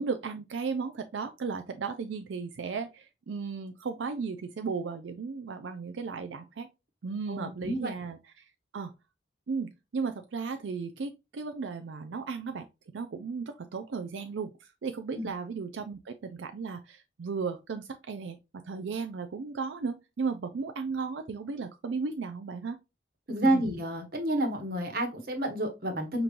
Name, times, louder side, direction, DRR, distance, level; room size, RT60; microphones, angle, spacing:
voice 1, 0.0-6.7 7.0-8.9 9.5-12.7 12.9-22.8 23.4-23.6, right 5 dB, 90° right, 0.4 m, -35 dB
voice 2, 7.3-7.9 15.1-15.3 23.3-26.2, right 1 dB, 55° right, 1.3 m, -29 dB
5.2 x 3.0 x 2.5 m
head